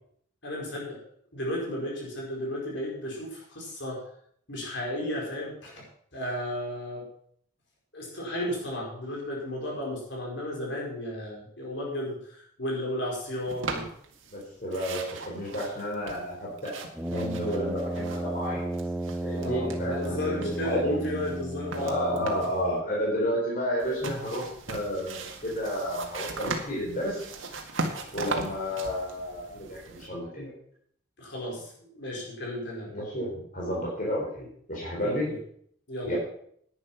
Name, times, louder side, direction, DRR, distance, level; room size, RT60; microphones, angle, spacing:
voice 1, 0.4-1.0 1.3-4.0 4.5-5.7 6.1-7.0 7.9-13.8 19.3-22.0 31.2-33.0 35.0-35.4 35.9-36.2, left 1 dB, 60° left, -3 dB, 4.9 m, -34 dB
sound 1, 13.5-14.4 14.7-18.5 18.7-20.1 20.4-22.6 23.8-30.1, right 3 dB, 80° right, 1.8 m, -38 dB
voice 2, 14.3-18.7 19.2-20.9 21.8-27.2 28.1-30.5 32.9-35.3 36.1-36.2, equal, 40° left, -4 dB, 4.1 m, -31 dB
Brass instrument, 16.9-22.8, right 1 dB, 5° right, 0.5 m, -34 dB
11.0 x 9.9 x 5.9 m, 0.64 s
head